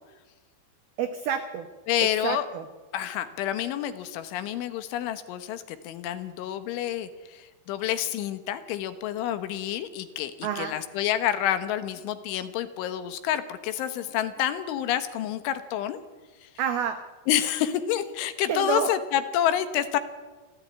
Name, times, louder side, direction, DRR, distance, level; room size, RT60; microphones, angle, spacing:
voice 1, 1.0-1.7 2.0-2.6 10.4-10.8 16.6-17.0 18.4-18.9, right 7 dB, 90° right, 9 dB, 2.1 m, -29 dB
voice 2, 1.9-2.5 2.9-16.0 16.4-16.5 17.3-20.0, left 11 dB, 75° left, 11 dB, 3.5 m, -28 dB
27.5 x 15.0 x 9.6 m, 1.3 s
omnidirectional pair, 6.0 m